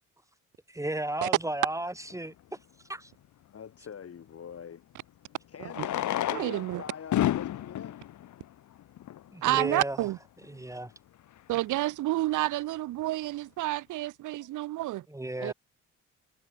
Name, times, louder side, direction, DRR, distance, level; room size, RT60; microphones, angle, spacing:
voice 1, 0.7-2.3 2.9-3.1 9.3-10.0 10.5-10.9 15.1-15.5, right 1 dB, 10° right, 2.4 m, -34 dB
Fireworks, 2.1-2.2 4.5-4.6 5.6-9.4 10.1-10.2 10.4-10.5 10.7-10.8 11.4-11.6, left 12 dB, 75° left, 2.4 m, -32 dB
voice 2, 3.5-4.8 5.5-8.0, left 7 dB, 50° left, 6.5 m, -44 dB
voice 3, 6.3-6.8 9.4-10.2 11.5-15.0 15.4-15.5, right 16 dB, 90° right, 1.5 m, -30 dB
cardioid pair, 90°, 30 cm